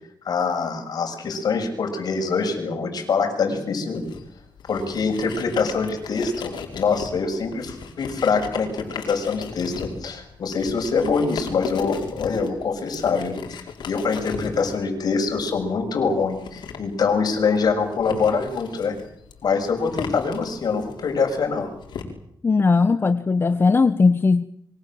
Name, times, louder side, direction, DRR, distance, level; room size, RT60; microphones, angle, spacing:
voice 1, 0.2-4.0 4.7-13.4 13.9-19.0 19.4-21.7, left 5 dB, 60° left, 5 dB, 6.9 m, -24 dB
sound 1, 3.9-22.0, left 6 dB, 80° left, 5.0 m, -37 dB
voice 2, 22.4-24.4, left 4 dB, 30° left, 12 dB, 1.0 m, -18 dB
26.5 x 24.0 x 7.7 m, 0.73 s
cardioid pair, 100°, 8 cm